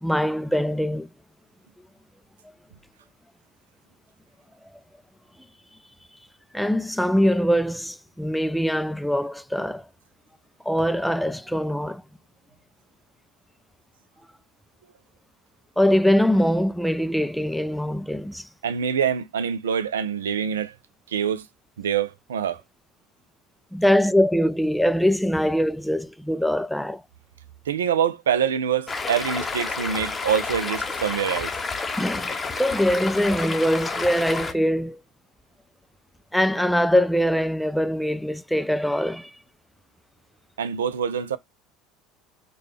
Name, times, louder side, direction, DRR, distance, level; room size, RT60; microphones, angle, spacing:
voice 1, 0.0-1.1 6.5-9.8 10.7-12.0 15.8-18.5 23.7-27.0 32.0-32.3 32.6-35.0 36.3-39.4, equal, ahead, 0.3 m, -22 dB
voice 2, 18.6-20.8 21.1-21.5 21.8-22.6 27.7-31.5 40.6-41.4, right 8 dB, 80° right, 0.4 m, -25 dB
Stream, 28.9-34.5, left 4 dB, 20° left, 0.7 m, -30 dB
4.9 x 2.2 x 3.1 m
hypercardioid pair, 75°, 0 cm